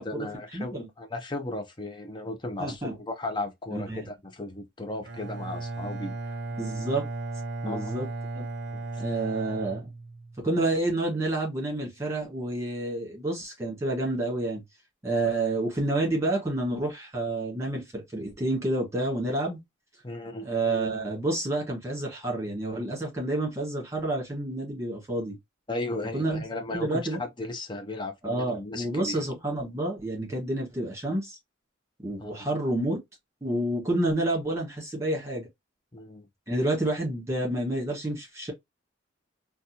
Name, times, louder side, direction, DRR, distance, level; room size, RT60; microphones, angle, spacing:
voice 1, 0.0-6.4 7.6-7.9 8.7-9.0 20.0-20.5 25.7-29.2 32.2-32.3 35.9-36.3, left 2 dB, 25° left, 0.6 m, -36 dB
voice 2, 0.5-0.8 2.6-3.0 3.7-4.1 6.6-7.1 7.6-8.1 8.3-8.4 9.0-9.9 10.4-14.6 15.0-19.6 20.4-25.4 26.1-26.4 26.7-27.2 28.2-31.4 32.0-33.0 33.4-35.5 36.5-38.5, right 2 dB, 15° right, 1.7 m, -29 dB
Bowed string instrument, 5.0-10.5, right 3 dB, 55° right, 0.7 m, -36 dB
4.0 x 2.3 x 2.7 m
head